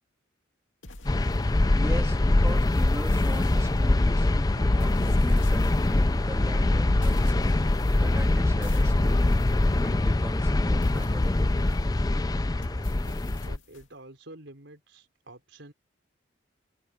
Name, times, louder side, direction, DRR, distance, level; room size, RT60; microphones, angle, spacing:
sound 1, 0.8-1.9 2.5-4.1 4.8-6.1 7.0-8.3 8.6-10.2 10.8-12.2 12.6-13.9, left 2 dB, 85° left, 2.5 m, -46 dB
sound 2, 1.1-13.6, left 2 dB, 20° left, 0.4 m, -23 dB
voice 1, 1.7-7.5 8.0-9.5 9.8-11.6, right 1 dB, 15° right, 2.3 m, -40 dB
Musical instrument, 3.4-13.5, equal, 40° right, 4.9 m, -44 dB
voice 2, 13.2-15.7, right 1 dB, 75° right, 4.3 m, -48 dB
head